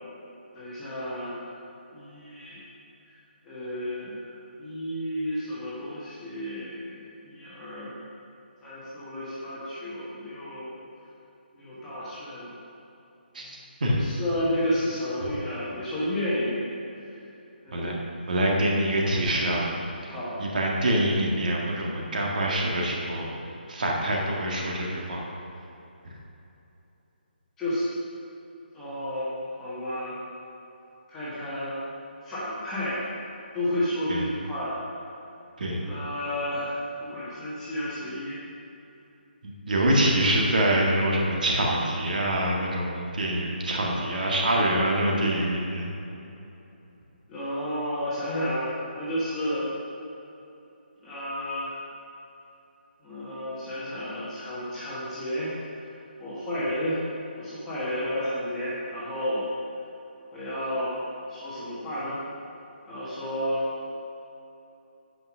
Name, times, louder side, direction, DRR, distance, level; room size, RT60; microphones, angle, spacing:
voice 1, 0.5-1.5 1.9-2.6 3.4-8.0 8.6-10.7 11.5-12.5 13.9-16.6 17.6-18.1 20.1-20.3 27.6-27.9 28.7-30.2 31.1-31.8 32.2-33.0 33.5-34.8 35.8-38.4 39.8-40.0 43.8-44.8 47.3-49.6 51.0-51.8 53.0-55.8 56.2-57.0 57.4-59.4 60.3-60.9 61.3-62.2 62.9-63.7, equal, 5° left, -11 dB, 1.3 m, -32 dB
voice 2, 18.3-19.7 20.4-23.3 23.7-25.3 34.1-34.2 35.6-35.8 39.7-45.8, right 1 dB, 50° right, -2 dB, 1.8 m, -25 dB
9.1 x 5.8 x 6.1 m, 2.9 s
hypercardioid pair, 175°, 6 cm